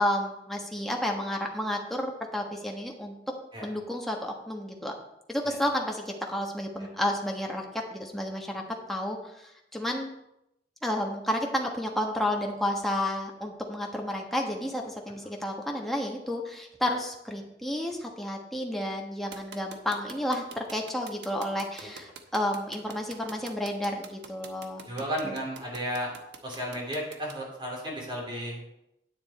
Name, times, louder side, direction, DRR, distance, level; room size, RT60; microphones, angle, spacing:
voice 1, 0.0-3.1 3.6-4.9 5.3-7.6 7.9-8.6 8.9-10.1 10.8-24.8 25.2-25.3, left 1 dB, ahead, 0 dB, 1.4 m, -31 dB
sound 1, 19.3-27.3, right 5 dB, 70° right, 1.0 m, -45 dB
voice 2, 24.9-26.1 26.4-28.6, equal, 25° right, -2 dB, 2.8 m, -34 dB
9.7 x 8.6 x 4.3 m, 0.84 s
head